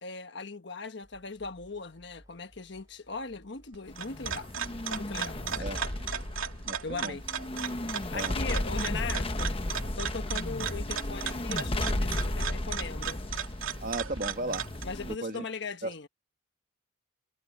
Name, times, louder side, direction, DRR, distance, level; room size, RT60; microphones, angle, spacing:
voice 1, 0.0-4.5 5.0-5.7 6.8-7.2 8.1-9.5 10.0-13.2 14.8-16.1, left 4 dB, 55° left, 1.3 m, -39 dB
sound 1, 1.0-15.0, equal, 15° right, 5.7 m, -62 dB
sound 2, 3.7-14.8, right 8 dB, 90° right, 2.7 m, -36 dB
sound 3, 3.9-15.1, left 1 dB, 25° left, 1.1 m, -34 dB
voice 2, 6.6-7.2 8.1-8.3 13.8-14.6 15.0-15.4 15.8-15.9, right 2 dB, 45° right, 1.6 m, -35 dB
head